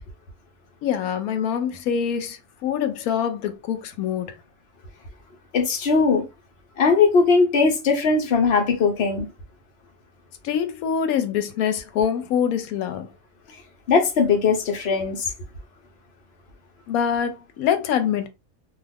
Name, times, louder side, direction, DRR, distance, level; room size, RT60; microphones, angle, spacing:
voice 1, 0.8-4.3 10.4-13.1 16.9-18.3, left 8 dB, 85° left, 1.1 m, -25 dB
voice 2, 5.5-6.2 6.8-9.3 13.9-15.3, left 4 dB, 55° left, 0.9 m, -19 dB
2.4 x 2.4 x 3.3 m
omnidirectional pair, 1.5 m